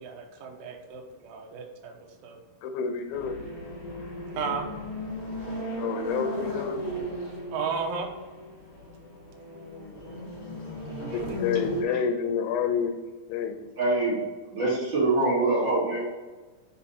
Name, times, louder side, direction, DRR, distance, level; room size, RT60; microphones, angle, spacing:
voice 1, 0.0-1.9 2.2-2.4 4.4-4.7 7.5-8.1 10.9-11.4, right 5 dB, 85° right, 2 dB, 2.0 m, -34 dB
voice 2, 2.6-3.3 5.8-6.8 11.1-12.9 13.3-13.7, left 7 dB, 80° left, 6 dB, 2.4 m, -29 dB
sound 1, 3.1-11.8, equal, 50° left, 1.9 m, -36 dB
voice 3, 13.8-14.2 14.5-16.0, right 2 dB, 45° right, -7 dB, 1.7 m, -24 dB
5.6 x 4.9 x 4.1 m, 1.3 s
omnidirectional pair, 5.1 m